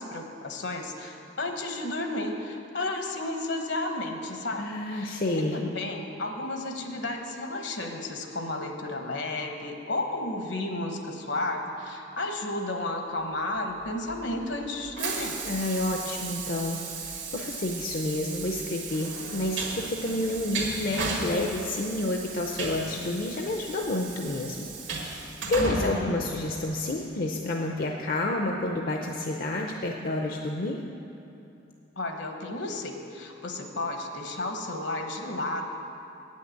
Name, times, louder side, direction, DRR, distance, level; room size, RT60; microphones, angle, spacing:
voice 1, 0.0-15.3 25.6-26.2 32.0-35.7, left 2 dB, 70° left, 4 dB, 1.1 m, -32 dB
voice 2, 4.6-5.6 15.4-30.8, left 2 dB, 50° left, 1 dB, 0.6 m, -30 dB
Train, 13.8-27.0, right 3 dB, 80° right, 1.7 m, -36 dB
8.9 x 6.4 x 8.4 m, 2.9 s
head